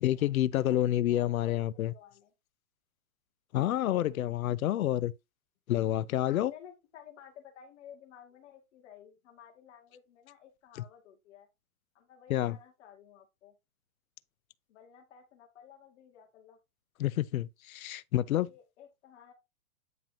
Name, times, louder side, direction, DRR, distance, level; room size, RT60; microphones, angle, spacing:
voice 1, 0.0-1.9 3.5-5.1 5.7-6.5 12.3-12.6 17.0-18.5, left 13 dB, 70° left, 0.6 m, -28 dB
voice 2, 0.7-2.3 4.0-4.3 6.3-11.5 11.9-13.5 14.7-16.6 18.3-19.3, left 9 dB, 55° left, 2.3 m, -54 dB
9.4 x 5.6 x 2.9 m
hypercardioid pair, 130°, 43 cm